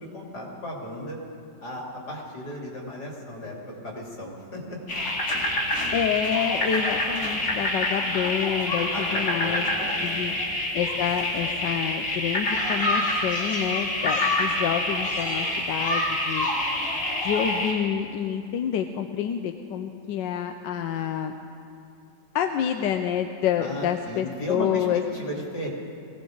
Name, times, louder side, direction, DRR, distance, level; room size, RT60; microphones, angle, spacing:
voice 1, 0.1-1.2 1.6-4.8 8.9-10.3 23.6-24.9 25.1-25.7, equal, 65° left, -3 dB, 3.5 m, -35 dB
sound 1, 4.9-17.7, left 1 dB, 45° left, 2.7 m, -27 dB
voice 2, 5.9-9.7 10.0-10.3 10.7-16.5 17.2-21.3 22.3-25.0, left 9 dB, 90° left, 6 dB, 1.4 m, -28 dB
21.0 x 17.5 x 3.9 m, 2.7 s
omnidirectional pair, 1.9 m